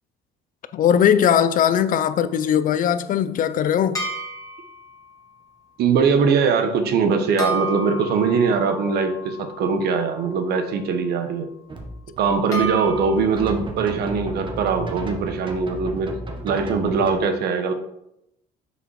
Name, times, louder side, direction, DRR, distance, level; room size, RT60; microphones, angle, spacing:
voice 1, 0.7-4.0, left 9 dB, 55° left, 0.5 m, -19 dB
sound 1, 4.0-5.0 7.4-10.5 12.5-13.4, right 1 dB, 20° left, 2.3 m, -31 dB
voice 2, 5.8-11.5 12.2-16.1 16.4-17.7, right 5 dB, 70° right, 1.1 m, -21 dB
sound 2, 11.7-17.2, right 2 dB, 30° right, 1.3 m, -34 dB
6.5 x 5.3 x 4.8 m
cardioid pair, 110°, 17 cm